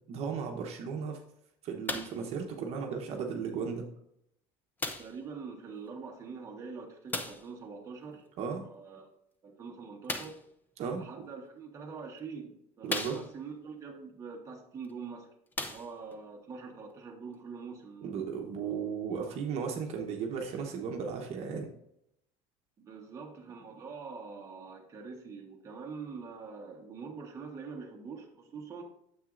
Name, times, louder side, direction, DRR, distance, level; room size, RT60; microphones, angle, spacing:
voice 1, 0.1-1.2 1.6-3.9 8.4-8.6 10.8-11.1 12.8-13.2 18.0-21.7, right 6 dB, 45° right, 2 dB, 1.1 m, -35 dB
sound 1, 1.9-2.3 3.2-3.3 4.8-5.2 7.1-7.5 10.0-10.5 11.5-11.6 12.2-12.3 12.9-13.6 14.8-14.9 15.5-16.2 17.0-17.1, left 2 dB, 10° left, 0.6 m, -37 dB
voice 2, 5.0-8.2 8.6-9.1 9.4-10.4 11.0-15.3 15.6-18.3 19.2-19.4 22.8-28.8, right 5 dB, 20° right, 0 dB, 1.2 m, -44 dB
9.0 x 7.3 x 2.5 m, 0.76 s
cardioid pair, 165°, 15 cm